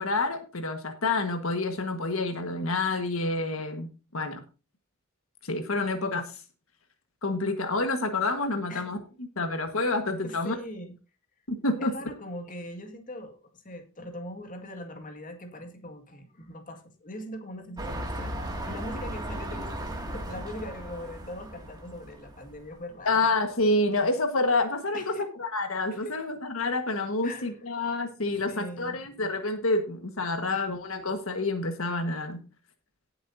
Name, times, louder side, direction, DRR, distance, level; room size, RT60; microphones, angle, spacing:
voice 1, 0.0-4.4 5.4-6.3 7.2-9.0 9.4-10.6 11.5-11.9 23.0-32.4, left 2 dB, 75° left, 6 dB, 1.5 m, -28 dB
voice 2, 10.2-11.0 11.8-23.3 24.9-25.3 25.9-26.2 27.2-27.5 28.2-29.2 30.4-30.9, left 1 dB, 40° left, 5 dB, 2.0 m, -41 dB
sound 1, 17.8-22.8 23.4-23.5, right 1 dB, 20° right, 2.2 m, -36 dB
18.0 x 7.7 x 2.7 m, 0.32 s
head